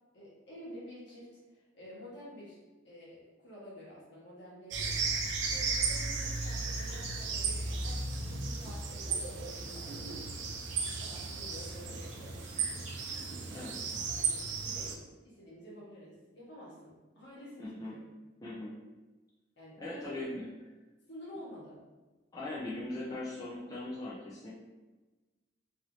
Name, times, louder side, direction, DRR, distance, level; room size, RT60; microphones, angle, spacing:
voice 1, 0.1-2.6 2.8-5.1 5.4-10.2 10.7-12.5 14.1-18.0 19.6-20.2 21.1-21.8, equal, 65° left, -7 dB, 1.2 m, -50 dB
sound 1, 4.7-15.0, right 4 dB, 65° right, 0.4 m, -35 dB
sound 2, 4.8-7.8 8.1-8.9 9.2-13.3 13.7-13.8, right 1 dB, 35° right, 0.9 m, -46 dB
voice 2, 17.6-18.0 18.4-18.7 19.8-20.5 22.3-24.5, left 2 dB, 20° left, -7 dB, 0.4 m, -40 dB
3.0 x 2.6 x 3.0 m, 1.2 s
head